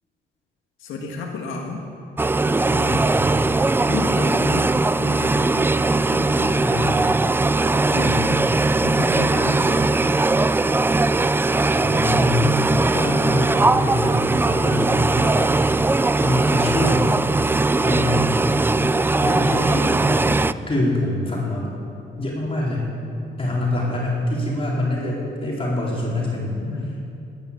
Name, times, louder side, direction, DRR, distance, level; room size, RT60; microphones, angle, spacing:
voice 1, 0.8-1.9 3.9-4.7 5.0-7.1 7.7-8.5 8.8-10.0 26.6-27.0, left 3 dB, 80° left, 0 dB, 1.8 m, -31 dB
sound 1, 2.2-20.5, right 3 dB, 10° right, 0.3 m, -20 dB
voice 2, 2.6-3.5 6.6-7.0 7.9-8.2 11.6-12.7 12.9-15.4 16.2-17.1 17.8-18.4 19.2-20.4 20.7-21.7 22.2-22.9 23.4-27.0, left 1 dB, 30° left, -5 dB, 4.3 m, -25 dB
17.5 x 10.0 x 7.0 m, 2.7 s
cardioid pair, 90°, 20 cm